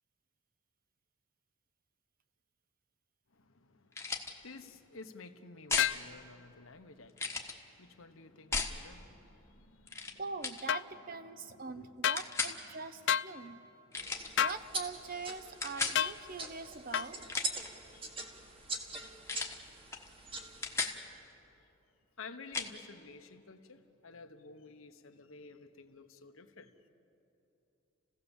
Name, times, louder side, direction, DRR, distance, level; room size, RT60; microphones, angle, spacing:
voice 1, 3.3-10.2 11.3-11.9 13.3-13.6 13.9-14.4 17.9-18.1 22.2-26.9, left 4 dB, 80° left, 1.2 m, -53 dB
sound 1, 3.9-4.3 5.7-5.9 7.2-7.5 8.5-8.8 9.9-10.1 10.4-10.6 12.2-12.6 13.9-14.3 15.6-16.0 17.1-17.7 19.3-19.6 19.9-20.1 20.4-21.0 22.5-22.7, left 4 dB, 15° left, 1.2 m, -35 dB
sound 2, 5.8-6.0 10.7-10.8 12.0-12.2 13.1-13.3 14.4-14.6 15.9-16.2 16.9-17.1, left 9 dB, 60° left, 0.4 m, -29 dB
voice 2, 10.2-13.6 14.4-17.2, right 4 dB, 45° right, 0.8 m, -43 dB
sound 3, 14.0-20.9, right 3 dB, 25° right, 1.6 m, -43 dB
30.0 x 16.5 x 7.2 m
head